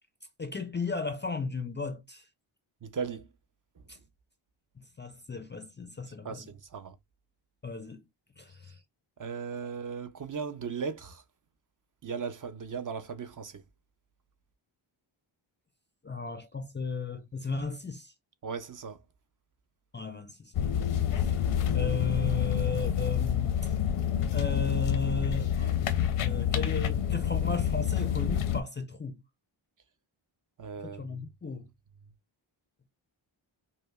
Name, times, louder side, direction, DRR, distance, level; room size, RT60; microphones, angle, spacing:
voice 1, 0.4-2.2 3.9-4.0 4.8-6.5 7.6-8.0 8.4-8.8 16.0-18.1 19.9-20.8 21.1-21.4 21.7-23.7 24.3-29.2 30.8-31.7, left 4 dB, 25° left, 0.4 m, -35 dB
voice 2, 2.8-3.3 6.2-7.0 9.2-11.2 12.0-13.6 18.4-19.0 30.6-31.2, right 6 dB, 40° right, 0.5 m, -37 dB
sound 1, 20.5-28.6, left 9 dB, 85° left, 0.7 m, -28 dB
5.1 x 2.1 x 2.2 m
wide cardioid pair, 90°, 49 cm